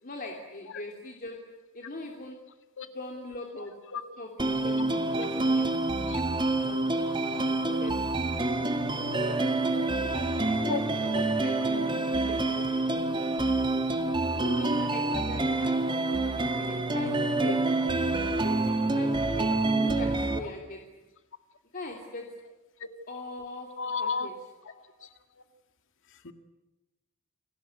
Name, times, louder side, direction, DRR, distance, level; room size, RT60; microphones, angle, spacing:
voice 1, 0.0-1.4 1.7-2.4 2.9-3.7 4.2-5.8 6.6-7.0 7.3-7.9 9.2-9.5 10.0-12.9 13.4-13.5 14.3-15.8 16.5-17.6 18.4-21.0 21.7-22.3 23.1-23.7 24.0-24.3 24.7-24.8, left 2 dB, 40° left, 1 dB, 3.0 m, -41 dB
voice 2, 3.5-4.0 4.7-4.8 6.1-6.2 10.7-10.8 11.1-11.2 15.1-15.2 20.4-20.5 22.8-22.9 23.8-24.3 24.6-24.7 25.0-25.4 26.1-26.3, left 5 dB, 60° left, 8 dB, 2.1 m, -35 dB
sound 1, 4.4-20.4, right 2 dB, 20° right, 1.9 m, -27 dB
29.0 x 19.0 x 9.6 m, 1.1 s
head